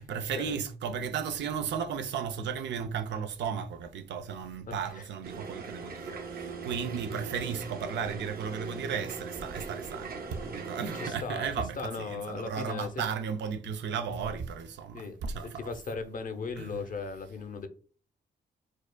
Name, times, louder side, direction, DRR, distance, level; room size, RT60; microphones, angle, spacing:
voice 1, 0.0-15.7 16.6-16.8, right 6 dB, 90° right, 0.5 m, -35 dB
voice 2, 4.7-5.1 10.9-11.5 11.8-12.9 14.9-15.2 15.4-17.7, left 4 dB, 50° left, 0.6 m, -37 dB
sound 1, 5.2-11.1, right 4 dB, 55° right, 0.7 m, -40 dB
4.5 x 2.4 x 2.2 m
cardioid pair, 90°, 18 cm